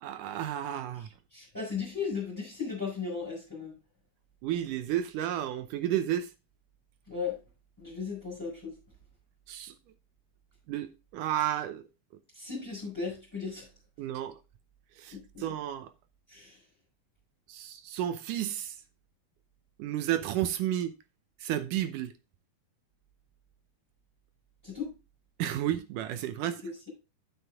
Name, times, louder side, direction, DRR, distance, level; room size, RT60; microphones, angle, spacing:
voice 1, 0.0-1.1 4.4-6.3 9.5-9.7 10.7-11.8 14.0-14.4 15.0-15.9 17.5-18.8 19.8-20.9 21.4-22.1 25.4-26.6, right 12 dB, 75° right, 2.1 m, -32 dB
voice 2, 1.0-3.7 7.1-7.4 7.8-8.7 12.3-13.7 15.1-15.4 16.3-16.6 24.6-24.9 26.6-26.7, left 5 dB, 5° left, 5.1 m, -36 dB
9.2 x 8.2 x 3.5 m
omnidirectional pair, 4.4 m